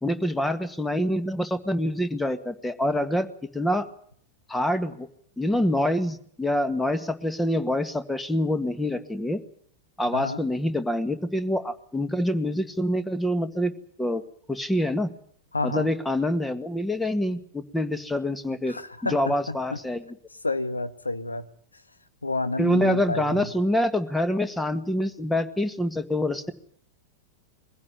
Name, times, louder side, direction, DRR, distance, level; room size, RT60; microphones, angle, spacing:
voice 1, 0.0-3.3 3.5-3.9 4.5-5.1 5.4-9.4 10.0-13.7 14.0-14.2 14.5-15.1 15.6-18.8 19.0-20.0 22.6-26.5, left 1 dB, 5° left, 10 dB, 1.9 m, -26 dB
voice 2, 15.5-15.9 18.7-19.8 20.4-21.5 22.2-23.5, left 2 dB, 80° left, 9 dB, 1.7 m, -30 dB
23.0 x 16.0 x 9.9 m, 0.63 s
figure-of-eight pair, 90°, 0 cm